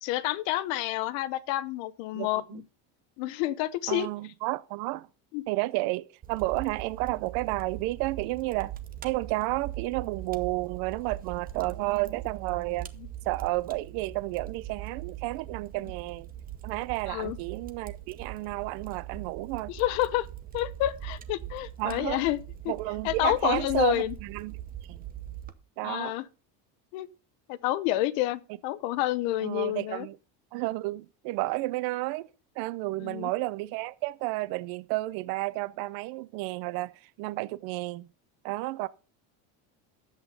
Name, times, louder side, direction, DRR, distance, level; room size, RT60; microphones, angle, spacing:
voice 1, 0.0-2.6 3.2-4.1 5.3-5.4 13.0-13.1 17.1-17.4 19.7-20.3 20.5-22.7 23.0-24.1 25.8-26.2 26.9-27.1 27.5-30.1 33.0-33.3, left 15 dB, 75° left, 1.0 m, -29 dB
voice 2, 2.1-2.6 3.9-5.1 5.5-8.8 9.0-12.9 13.2-16.3 16.6-19.7 21.8-22.2 22.7-24.6 24.9-25.0 25.8-26.1 29.4-30.2 30.5-32.3 32.6-38.1 38.4-38.9, right 20 dB, 60° right, 0.7 m, -31 dB
Fire, 6.2-25.5, right 12 dB, 20° right, 0.8 m, -41 dB
10.5 x 8.2 x 5.3 m
cardioid pair, 160°, 41 cm